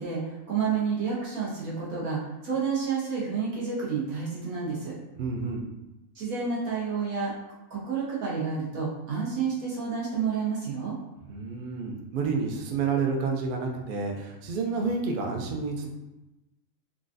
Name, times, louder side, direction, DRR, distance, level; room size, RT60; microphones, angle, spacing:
voice 1, 0.0-4.9 6.1-7.3 7.7-11.0, right 5 dB, 85° right, -5 dB, 1.5 m, -30 dB
voice 2, 5.2-5.7 11.3-15.9, right 4 dB, 65° right, 2 dB, 0.5 m, -29 dB
3.8 x 2.4 x 2.5 m, 1.0 s
omnidirectional pair, 1.5 m